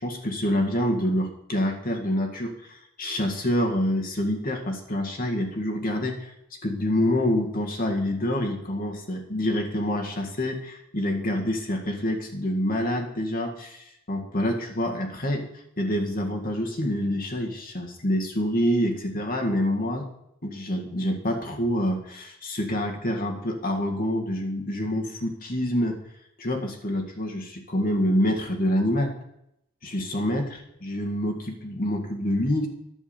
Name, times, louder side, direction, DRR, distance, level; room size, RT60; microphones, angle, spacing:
voice 1, 0.0-6.3 6.6-15.5 15.8-20.1 20.4-26.0 26.4-29.1 29.8-30.4 30.8-32.7, left 1 dB, 40° left, 3 dB, 1.8 m, -27 dB
11.0 x 6.1 x 8.7 m, 0.79 s
head